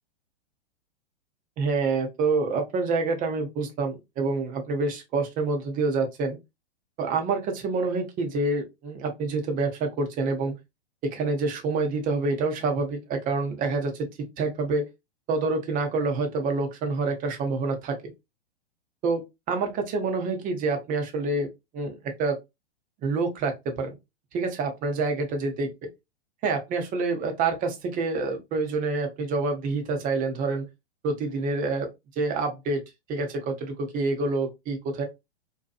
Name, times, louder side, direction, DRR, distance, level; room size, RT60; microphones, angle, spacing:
voice 1, 1.6-6.4 7.0-10.5 11.0-14.1 14.4-14.9 15.3-18.0 19.0-21.5 21.7-22.4 23.0-23.9 24.3-25.7 26.4-30.7 31.0-31.9 32.2-32.8 33.1-35.0, right 3 dB, 25° right, 0.7 m, -27 dB
2.7 x 2.2 x 2.4 m
hypercardioid pair, 115°, 32 cm